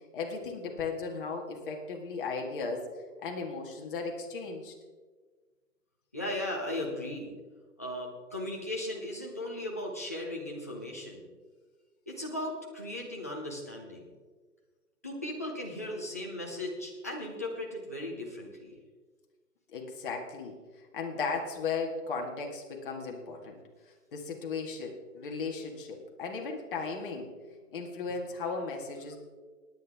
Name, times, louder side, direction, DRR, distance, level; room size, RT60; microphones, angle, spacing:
voice 1, 0.1-2.9 3.2-4.7 19.7-20.6 20.9-23.6 24.1-27.3 27.7-29.2, left 4 dB, 35° left, 1 dB, 2.0 m, -36 dB
voice 2, 6.1-7.3 7.8-11.3 12.1-14.1 15.0-18.8, left 1 dB, 10° left, -2 dB, 0.6 m, -37 dB
19.5 x 9.3 x 3.6 m, 1.4 s
hypercardioid pair, 155°, 48 cm